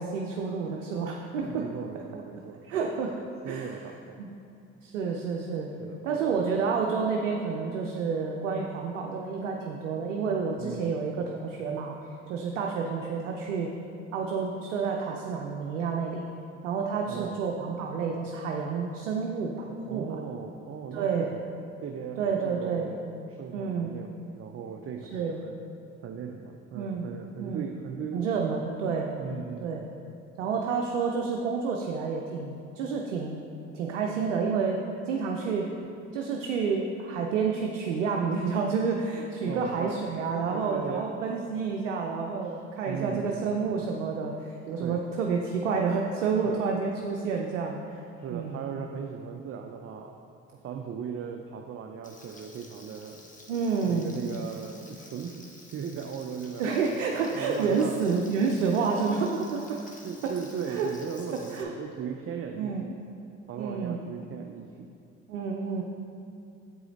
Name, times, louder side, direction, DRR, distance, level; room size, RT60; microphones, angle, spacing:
voice 1, 0.0-1.6 2.7-3.1 3.5-3.7 4.2-4.3 4.8-5.7 6.0-11.9 12.3-13.7 14.1-16.2 16.6-20.2 20.9-21.3 22.2-22.9 23.5-23.9 25.1-25.4 26.7-27.1 27.4-27.7 28.1-29.1 29.6-29.8 30.4-33.4 33.7-34.8 35.1-35.7 36.1-47.8 48.3-48.6 53.5-54.1 56.6-59.8 60.2-60.3 60.7-60.9 61.3-61.7 62.6-62.8 63.6-64.0 65.3-65.8, right 5 dB, 90° right, 1 dB, 0.5 m, -29 dB
voice 2, 1.4-2.9 3.4-4.2 5.8-6.5 10.6-11.0 17.0-17.4 19.9-21.4 21.8-25.5 26.0-28.3 29.2-29.9 39.5-40.0 40.5-41.1 41.6-41.7 42.4-42.6 42.9-43.5 44.8-45.0 46.4-46.6 48.2-50.2 50.6-53.2 53.8-55.4 55.7-56.6 57.3-58.1 60.0-63.0 63.5-64.9, right 7 dB, 40° right, 4 dB, 0.5 m, -38 dB
Frying (food), 52.0-61.6, left 2 dB, 20° left, 1.0 m, -51 dB
7.7 x 4.8 x 3.9 m, 2.6 s
hypercardioid pair, 55°, 37 cm